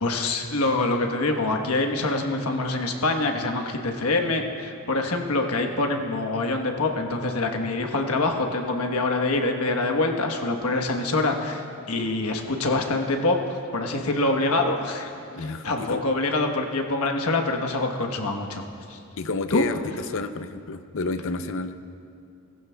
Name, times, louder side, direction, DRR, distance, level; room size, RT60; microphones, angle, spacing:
voice 1, 0.0-15.1 15.4-18.6 18.9-19.0 19.5-19.6, left 2 dB, 85° left, 4 dB, 1.2 m, -25 dB
voice 2, 15.3-16.0 19.2-21.8, left 3 dB, 60° left, 10 dB, 0.6 m, -30 dB
19.5 x 14.5 x 2.3 m, 2.5 s
head